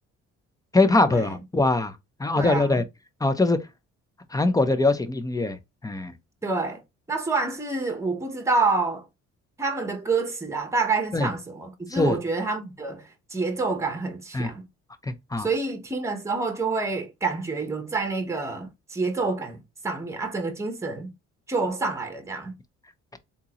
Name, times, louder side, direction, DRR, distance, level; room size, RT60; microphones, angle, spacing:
voice 1, 0.7-1.9 2.2-2.8 3.2-3.6 4.3-5.6 5.8-6.1 11.1-11.3 11.9-12.2 14.3-14.5 15.1-15.5, left 2 dB, 10° left, 0.6 m, -22 dB
voice 2, 2.3-2.8 6.4-6.8 7.1-9.0 9.6-14.6 15.4-21.1 21.5-22.5, right 3 dB, 10° right, 1.0 m, -28 dB
3.6 x 2.8 x 2.9 m
cardioid pair, 90°, 30 cm